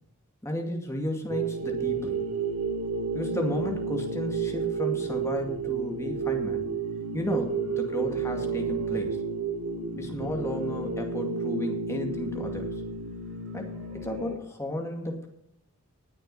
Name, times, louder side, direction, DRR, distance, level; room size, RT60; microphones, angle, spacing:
voice 1, 0.4-2.3 3.1-6.7 7.1-9.2 9.9-12.7 13.5-15.3, left 1 dB, 15° left, 2 dB, 2.3 m, -33 dB
sound 1, 1.3-14.3, right 5 dB, 70° right, 2.6 m, -31 dB
19.5 x 6.5 x 5.6 m, 0.73 s
head